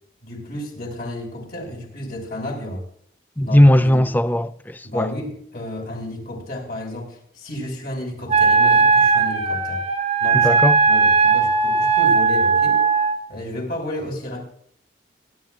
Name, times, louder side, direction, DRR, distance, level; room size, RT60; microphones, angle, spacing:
voice 1, 0.2-2.8 3.4-4.1 4.8-9.8 10.2-10.5 10.9-12.8 13.3-14.4, left 1 dB, 55° left, 5.8 m, -32 dB
voice 2, 3.4-5.1 10.3-10.8, left 1 dB, 10° left, 0.5 m, -17 dB
Wind instrument woodwind instrument, 8.3-13.2, right 4 dB, 30° right, 1.3 m, -17 dB
24.0 x 12.0 x 2.5 m
head